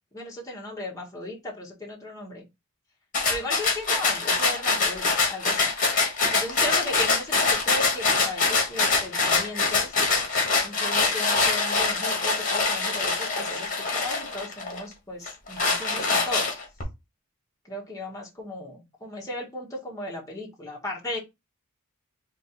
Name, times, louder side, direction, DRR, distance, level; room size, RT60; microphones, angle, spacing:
voice 1, 0.1-2.4 3.3-5.7 6.3-10.0 10.6-16.5 17.7-21.2, left 1 dB, 15° left, 1.5 m, -36 dB
sound 1, 3.1-14.8 15.3-16.8, left 4 dB, 40° left, 1.4 m, -24 dB
3.7 x 2.7 x 4.0 m
head